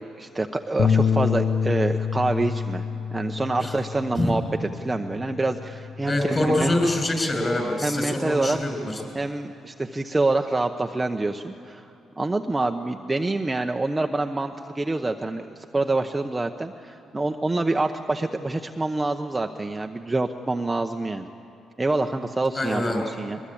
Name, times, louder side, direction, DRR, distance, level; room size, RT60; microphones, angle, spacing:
voice 1, 0.0-2.8 3.1-6.8 7.8-8.6 9.1-11.9 12.2-21.3 21.8-23.4, right 2 dB, 15° right, 4 dB, 0.8 m, -26 dB
sound 1, 0.8-7.0, left 6 dB, 65° left, 0.8 m, -27 dB
voice 2, 6.1-9.0 22.5-23.0, left 1 dB, 25° left, 3 dB, 6.3 m, -24 dB
22.5 x 21.0 x 8.6 m, 2.9 s
cardioid pair, 90°, 0 cm